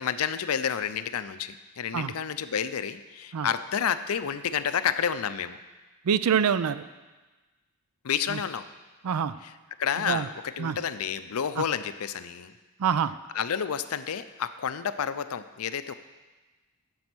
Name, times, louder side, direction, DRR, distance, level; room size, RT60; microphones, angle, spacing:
voice 1, 0.0-5.6 8.0-8.7 9.4-9.5 9.8-12.5 13.3-15.9, left 7 dB, 70° left, 12 dB, 0.5 m, -30 dB
voice 2, 6.0-6.8 8.3-8.4 9.0-9.4 10.1-10.3 10.6-10.8 11.6-11.7 12.8-13.2, right 7 dB, 90° right, 15 dB, 0.4 m, -25 dB
9.7 x 7.0 x 6.1 m, 1.2 s
head